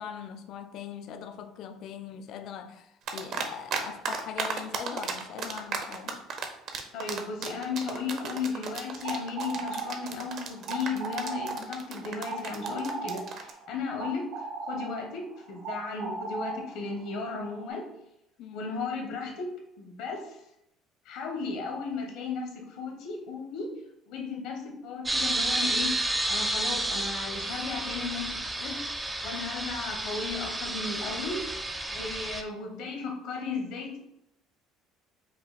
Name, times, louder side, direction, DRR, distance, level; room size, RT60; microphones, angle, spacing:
voice 1, 0.0-6.3 18.4-18.7, left 8 dB, 60° left, 0.4 m, -41 dB
sound 1, 3.1-3.8 4.1-13.5, right 6 dB, 55° right, 0.6 m, -34 dB
voice 2, 6.9-17.9 18.5-19.5 19.8-20.4 21.0-23.7 24.1-28.8 29.2-31.5 31.9-34.0, left 4 dB, 80° left, 1.0 m, -35 dB
sound 2, 8.9-17.7, right 2 dB, 75° right, 1.5 m, -38 dB
sound 3, 25.1-32.4, right 1 dB, 10° right, 0.4 m, -31 dB
5.3 x 2.2 x 4.0 m
cardioid pair, 125°, 0 cm